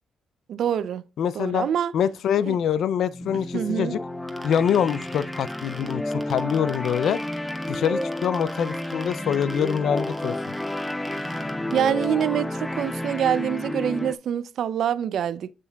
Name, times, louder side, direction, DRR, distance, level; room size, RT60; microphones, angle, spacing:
voice 1, 0.5-1.0 1.3-1.9 2.5-2.6 3.5-4.0 11.7-15.5, right 9 dB, 65° right, 0.5 m, -25 dB
voice 2, 1.2-1.7 1.9-4.0 4.4-7.2 7.7-10.4, left 8 dB, 70° left, 0.4 m, -25 dB
sound 1, 3.1-14.2, left 1 dB, 10° left, 0.5 m, -31 dB
sound 2, 4.3-12.2, right 2 dB, 10° right, 1.4 m, -43 dB
8.1 x 7.5 x 2.3 m
cardioid pair, 90°, 0 cm